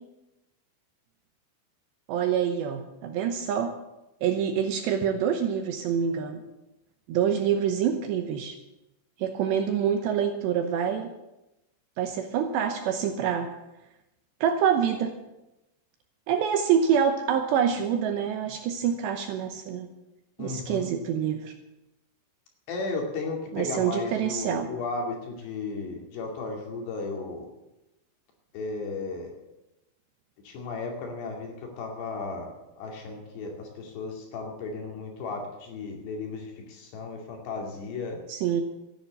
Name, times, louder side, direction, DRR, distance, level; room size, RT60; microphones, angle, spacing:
voice 1, 2.1-3.7 4.2-6.4 7.1-8.6 9.2-11.1 12.0-13.5 14.4-15.1 16.3-19.9 20.4-21.5 23.5-24.7 38.3-38.6, right 8 dB, 75° right, 6 dB, 2.7 m, -26 dB
voice 2, 20.4-20.9 22.7-27.5 28.5-29.4 30.4-38.2, left 3 dB, 60° left, 1 dB, 4.3 m, -35 dB
14.0 x 10.5 x 8.2 m, 0.95 s
omnidirectional pair, 5.8 m